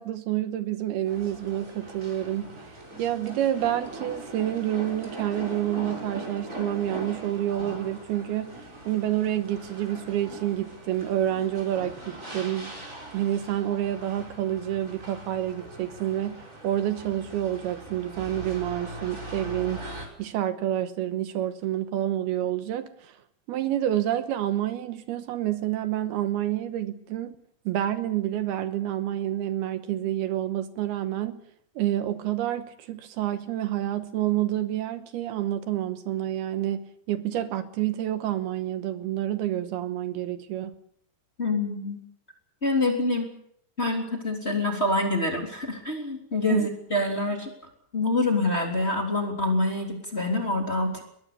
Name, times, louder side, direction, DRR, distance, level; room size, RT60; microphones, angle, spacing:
voice 1, 0.0-2.7 3.0-12.7 13.1-19.9 20.2-23.2 23.5-27.4 27.7-31.4 31.8-40.7 46.5-46.7, right 12 dB, 75° right, 2.8 m, -28 dB
sound 1, 1.0-20.1, right 2 dB, 20° right, 5.5 m, -41 dB
voice 2, 41.4-42.0 42.6-43.3 43.8-47.5 47.9-51.0, left 2 dB, 15° left, 3.1 m, -26 dB
22.0 x 21.5 x 6.8 m
omnidirectional pair, 4.8 m